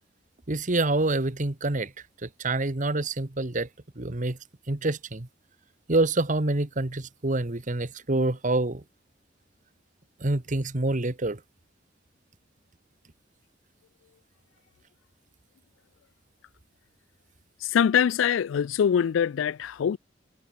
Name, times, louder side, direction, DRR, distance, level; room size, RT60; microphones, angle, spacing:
voice 1, 0.5-1.9 2.2-3.7 4.0-4.4 4.7-5.3 5.9-8.8 10.2-11.4, right 2 dB, 40° right, 1.4 m, -26 dB
voice 2, 17.7-20.0, left 8 dB, 85° left, 0.3 m, -23 dB
head